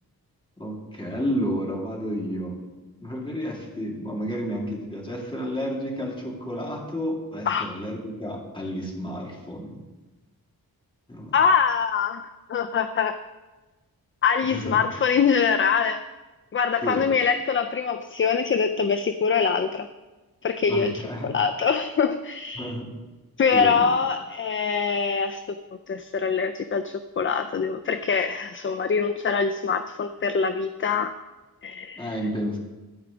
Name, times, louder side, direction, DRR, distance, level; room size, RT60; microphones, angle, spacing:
voice 1, 0.6-2.6 3.0-9.8 11.1-11.4 14.4-14.8 16.8-17.1 20.7-21.3 22.6-22.9 23.5-23.9 32.0-32.6, equal, 15° left, -2 dB, 2.3 m, -31 dB
voice 2, 11.3-12.2 12.5-13.2 14.2-16.0 16.5-19.9 20.4-22.7 23.4-25.4 25.9-31.1 31.6-32.1, left 6 dB, 35° left, 9 dB, 0.4 m, -24 dB
13.0 x 4.9 x 7.1 m, 1.2 s
wide cardioid pair, 140°, 37 cm